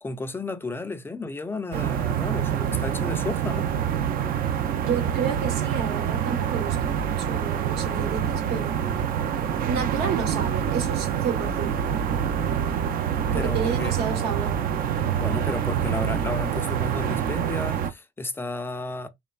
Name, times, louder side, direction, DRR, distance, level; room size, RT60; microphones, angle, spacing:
voice 1, 0.0-3.7 13.2-14.0 15.2-19.1, left 3 dB, 15° left, 0.3 m, -33 dB
sound 1, 1.7-17.9, right 9 dB, 60° right, 0.4 m, -26 dB
voice 2, 4.8-8.8 9.7-11.8 13.3-14.6, right 6 dB, 75° right, 1.0 m, -31 dB
3.0 x 2.1 x 2.3 m
cardioid pair, 110°, 17 cm